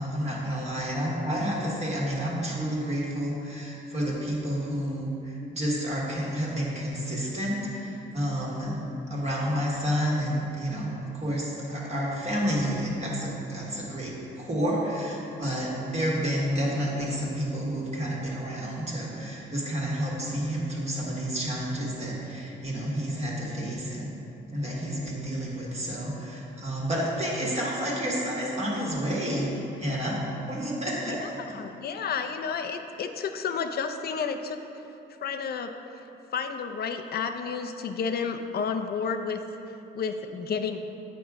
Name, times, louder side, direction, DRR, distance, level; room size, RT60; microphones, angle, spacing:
voice 1, 0.0-24.1 24.5-30.2 30.5-31.6, equal, 35° right, -5 dB, 1.5 m, -30 dB
voice 2, 31.1-34.6 35.2-35.7 36.3-39.4 39.9-40.8, left 6 dB, 50° left, 6 dB, 0.5 m, -31 dB
8.2 x 4.9 x 3.6 m, 2.9 s
cardioid pair, 90°, 20 cm